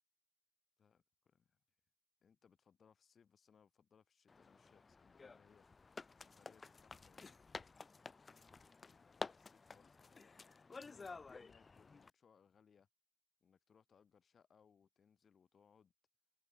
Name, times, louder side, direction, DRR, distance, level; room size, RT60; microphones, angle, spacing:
voice 1, 0.8-1.6 2.2-5.7 6.2-7.5 8.8-12.9 13.4-15.9, left 7 dB, 90° left, 5.1 m, -71 dB
sound 1, 4.3-12.1, left 4 dB, 65° left, 0.7 m, -52 dB
cardioid pair, 40°, 0 cm